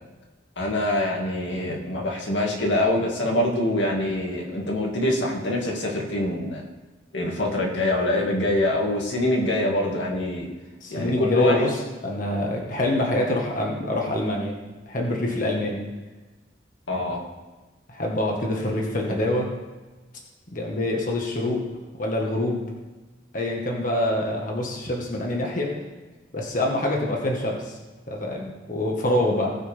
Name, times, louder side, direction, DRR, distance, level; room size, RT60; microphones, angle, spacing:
voice 1, 0.6-6.6 7.1-10.5 10.9-11.7 16.9-17.2, left 1 dB, 80° left, -1 dB, 2.3 m, -24 dB
voice 2, 10.8-14.6 14.9-15.8 17.9-19.5 20.5-21.6 22.0-22.6 23.3-25.8 26.3-27.8 28.1-29.5, left 1 dB, 45° left, -1 dB, 1.7 m, -25 dB
19.5 x 6.5 x 3.6 m, 1.2 s
head